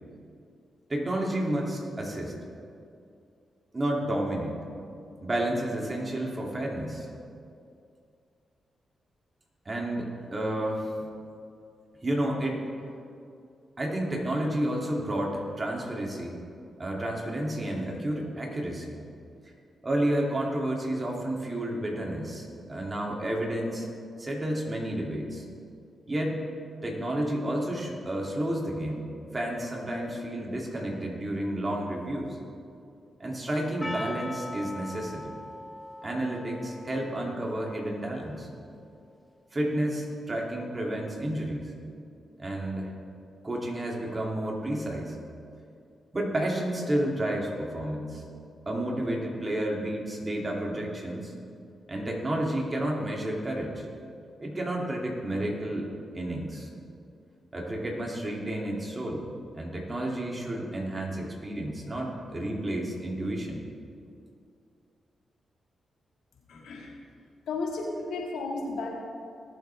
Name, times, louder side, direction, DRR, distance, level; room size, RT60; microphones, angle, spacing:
voice 1, 0.9-2.3 3.7-4.6 5.2-7.1 9.6-11.1 12.0-12.6 13.8-16.4 16.8-19.0 19.8-23.9 24.2-25.4 26.1-26.4 26.8-29.1 29.3-32.4 33.2-35.3 36.0-38.5 39.5-41.7 42.4-42.9 43.4-45.2 46.1-48.2 48.7-51.3 51.9-53.9 54.4-55.9 56.1-56.7 57.5-59.2 59.6-63.6, right 1 dB, 35° right, -2 dB, 2.8 m, -31 dB
Percussion, 33.8-38.4, left 1 dB, 15° left, 0.4 m, -41 dB
voice 2, 66.5-67.0 67.5-68.9, left 3 dB, 85° left, -2 dB, 2.1 m, -33 dB
19.0 x 7.6 x 3.5 m, 2.4 s
cardioid pair, 55°, 0 cm